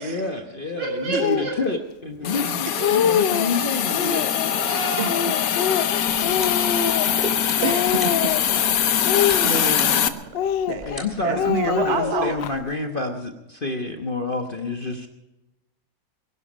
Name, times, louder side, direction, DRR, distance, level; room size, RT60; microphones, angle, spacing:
voice 1, 0.0-4.3 10.9-15.1, left 3 dB, 35° left, 4 dB, 1.0 m, -28 dB
voice 2, 0.8-1.5 2.7-2.9 4.0-5.8, right 3 dB, 80° right, -2 dB, 7.8 m, -31 dB
Speech, 1.2-1.5 2.2-2.3 2.6-3.5 3.9-4.5 5.1-7.3 7.6-8.6 9.0-10.0 10.3-11.0 11.3-12.5, left 9 dB, 85° left, 1.5 m, -24 dB
Hiss, 2.2-10.1, left 9 dB, 60° left, 1.1 m, -23 dB
sound 1, 6.1-12.6, equal, 20° right, 2.8 m, -43 dB
voice 3, 6.3-6.7 7.6-8.3 8.8-10.9 11.2-12.4, right 7 dB, 45° right, 8 dB, 1.1 m, -29 dB
22.5 x 11.5 x 5.1 m, 0.98 s
omnidirectional pair, 1.9 m